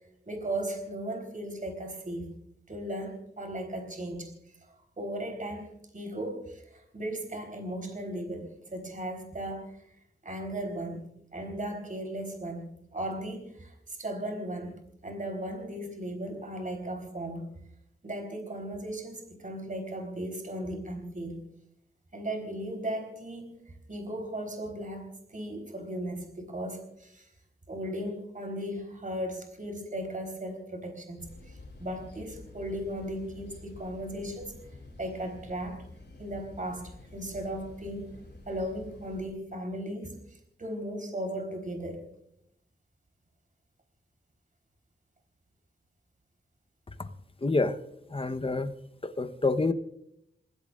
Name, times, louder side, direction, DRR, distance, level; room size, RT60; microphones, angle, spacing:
voice 1, 0.3-2.4 2.7-9.8 10.2-11.0 11.3-14.7 15.0-17.5 18.0-21.4 22.1-27.3 27.7-34.5 35.0-35.9 36.2-38.1 38.5-42.0, right 1 dB, 45° right, 4 dB, 3.9 m, -37 dB
sound 1, 31.2-39.3, left 2 dB, 65° left, 6.1 m, -49 dB
voice 2, 47.4-47.8 48.1-48.7 49.0-49.7, left 3 dB, 30° left, 9 dB, 1.0 m, -27 dB
28.5 x 16.0 x 2.5 m, 0.75 s
wide cardioid pair, 75°, 19 cm